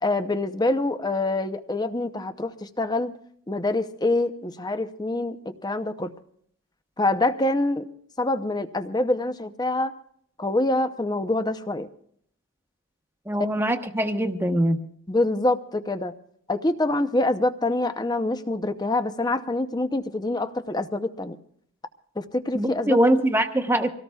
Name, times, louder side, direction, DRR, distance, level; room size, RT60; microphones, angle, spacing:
voice 1, 0.0-3.1 3.5-6.1 7.0-7.9 8.2-9.9 10.4-11.9 15.1-16.1 16.5-21.4 22.2-23.0, left 2 dB, 20° left, 9 dB, 0.7 m, -25 dB
voice 2, 13.3-14.8 22.5-23.9, right 1 dB, 10° right, 6 dB, 1.0 m, -22 dB
25.5 x 18.0 x 2.3 m, 0.64 s
head